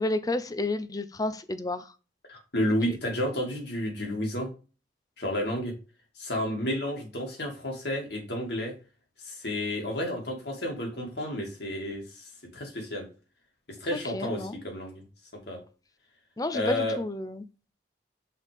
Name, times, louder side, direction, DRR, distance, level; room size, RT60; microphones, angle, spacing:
voice 1, 0.0-1.9 2.9-3.0 13.9-14.7 16.4-17.5, left 2 dB, 20° left, 0.5 m, -31 dB
voice 2, 2.3-4.5 5.2-5.7 6.2-8.7 9.2-13.1 13.8-15.0 15.5-15.6 16.5-17.0, left 1 dB, 60° left, 2.4 m, -31 dB
5.8 x 5.1 x 3.4 m
head